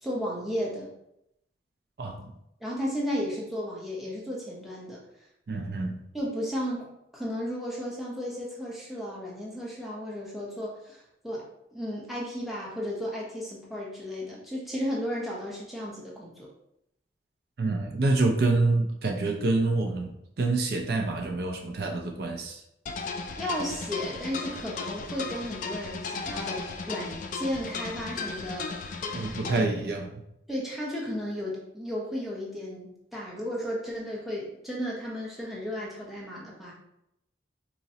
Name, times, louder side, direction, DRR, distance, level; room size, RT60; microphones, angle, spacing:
voice 1, 0.0-0.9 2.6-5.0 6.1-11.4 11.7-16.5 23.4-29.4 30.5-36.7, equal, ahead, -6 dB, 0.8 m, -34 dB
voice 2, 2.0-2.3 5.5-5.9 17.6-20.1 20.4-22.6 29.1-30.2, right 3 dB, 55° right, 2 dB, 0.4 m, -27 dB
sound 1, 22.9-29.7, left 4 dB, 45° left, 0.3 m, -36 dB
4.0 x 2.9 x 2.7 m, 0.80 s
head